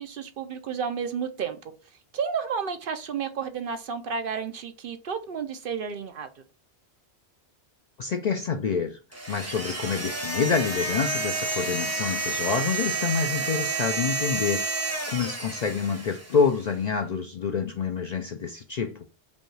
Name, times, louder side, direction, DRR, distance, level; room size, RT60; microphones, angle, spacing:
voice 1, 0.0-1.6 2.1-6.4, right 6 dB, 60° right, 0.7 m, -31 dB
voice 2, 8.0-9.0 9.3-19.1, left 6 dB, 55° left, 0.4 m, -27 dB
sound 1, 9.1-16.5, right 3 dB, 15° right, 0.8 m, -30 dB
5.1 x 2.3 x 3.1 m
omnidirectional pair, 1.1 m